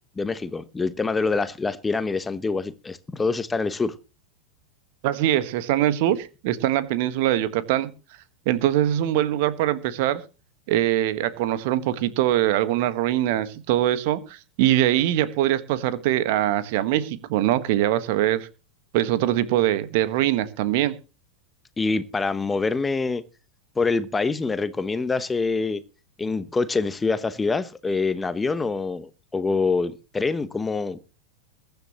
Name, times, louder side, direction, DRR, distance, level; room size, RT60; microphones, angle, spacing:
voice 1, 0.2-3.9 21.8-23.2 23.8-25.8 26.2-31.0, left 4 dB, 10° left, 1.0 m, -25 dB
voice 2, 5.0-7.9 8.4-10.2 10.7-18.5 18.9-21.0, right 13 dB, 50° right, 1.5 m, -23 dB
22.0 x 10.5 x 3.1 m
figure-of-eight pair, 90°, 0 cm